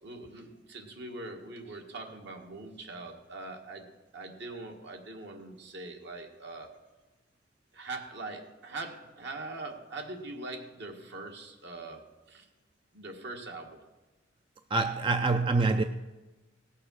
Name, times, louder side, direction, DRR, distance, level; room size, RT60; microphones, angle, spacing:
voice 1, 0.0-3.8 4.1-6.8 7.7-12.5 12.9-13.8, right 2 dB, 65° right, 3 dB, 1.7 m, -42 dB
voice 2, 14.7-15.8, right 3 dB, 25° right, 8 dB, 0.4 m, -25 dB
17.5 x 6.7 x 6.3 m, 1.1 s
head